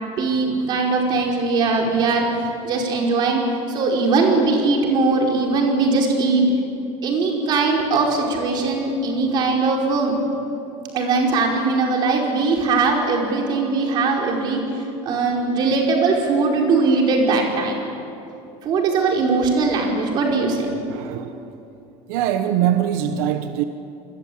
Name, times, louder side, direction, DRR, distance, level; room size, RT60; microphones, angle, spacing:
voice 1, 0.2-3.4 3.7-6.4 7.0-10.1 10.9-17.8 18.6-20.7, right 3 dB, 40° right, 0 dB, 5.0 m, -20 dB
voice 2, 20.9-21.5 22.1-23.6, right 10 dB, 90° right, 8 dB, 1.3 m, -22 dB
29.0 x 21.0 x 8.8 m, 2.8 s
cardioid pair, 180°, 12 cm